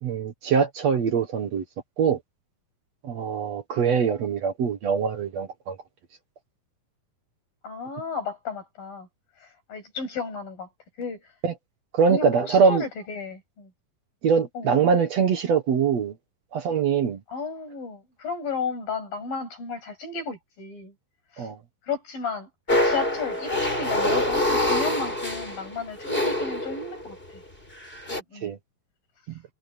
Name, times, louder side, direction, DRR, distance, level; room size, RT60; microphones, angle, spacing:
voice 1, 0.0-1.6 2.0-2.2 3.0-5.8 11.4-11.5 11.9-12.8 14.2-16.1 16.5-17.2 21.4-21.6 28.4-28.6, right 6 dB, 55° right, 2.3 m, -23 dB
voice 2, 7.6-9.1 9.4-10.7 11.0-11.3 12.1-13.7 14.5-14.8 17.3-20.9 21.3-21.5 21.8-27.4 28.1-28.5, left 4 dB, 80° left, 9.5 m, -34 dB
sound 1, 22.7-27.1 27.8-28.2, left 1 dB, 15° left, 8.1 m, -25 dB
omnidirectional pair, 4.1 m